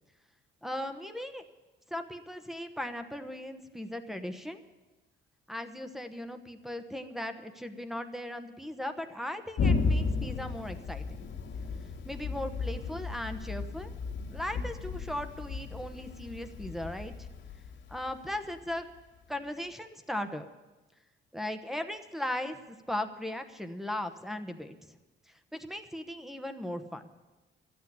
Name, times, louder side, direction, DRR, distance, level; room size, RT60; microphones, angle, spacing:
voice 1, 0.6-1.4 1.9-4.6 5.5-11.0 12.0-13.9 14.3-17.3 17.9-18.8 19.3-20.5 21.3-24.9 25.5-27.0, left 1 dB, ahead, 6 dB, 1.1 m, -38 dB
Thunder, 9.6-19.0, left 4 dB, 70° left, 2.1 m, -34 dB
12.5 x 8.5 x 9.8 m, 1.1 s
cardioid pair, 90°, 20 cm